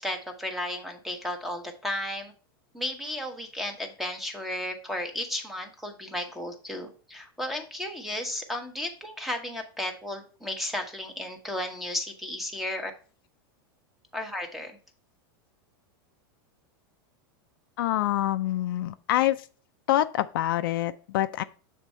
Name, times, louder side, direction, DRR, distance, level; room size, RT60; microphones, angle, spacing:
voice 1, 0.0-2.3 2.7-12.9 14.1-14.8, left 1 dB, ahead, 0.9 m, -34 dB
voice 2, 17.8-19.4 19.9-21.4, left 14 dB, 70° left, 0.4 m, -26 dB
6.8 x 3.6 x 4.2 m
supercardioid pair, 150°, 12 cm